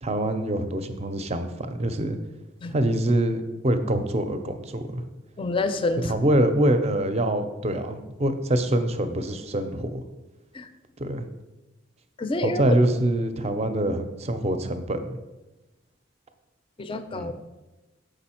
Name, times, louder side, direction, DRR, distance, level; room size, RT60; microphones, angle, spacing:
voice 1, 0.0-2.2 2.7-5.0 6.0-10.0 11.0-11.3 12.4-15.2 17.1-17.4, right 1 dB, 35° right, 9 dB, 0.5 m, -25 dB
voice 2, 5.4-6.1 10.5-10.7 12.2-12.8 16.8-17.3, left 2 dB, 25° left, 10 dB, 0.4 m, -27 dB
6.8 x 5.0 x 4.3 m, 1.1 s
head